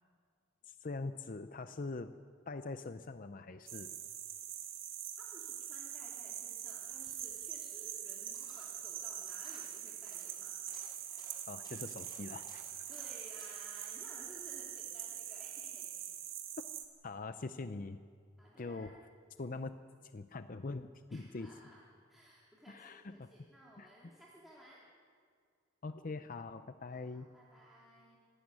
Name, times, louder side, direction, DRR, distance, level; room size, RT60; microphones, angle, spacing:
voice 1, 0.7-2.2 2.5-3.9 11.5-12.8 17.0-18.0 18.6-19.0 19.4-19.8 20.1-21.5 22.7-23.3 23.8-23.9 25.8-27.3, left 3 dB, 40° left, 10 dB, 0.5 m, -43 dB
sound 1, 3.7-16.8, right 10 dB, 65° right, 2.1 m, -44 dB
voice 2, 5.2-10.5 12.9-16.1 18.4-19.0 21.1-21.8 22.1-24.8 26.9-28.2, equal, ahead, -7 dB, 2.9 m, -58 dB
Coin (dropping), 6.8-15.3 15.6-15.7, left 1 dB, 20° left, 5.0 m, -63 dB
26.5 x 12.5 x 9.7 m, 2.1 s
head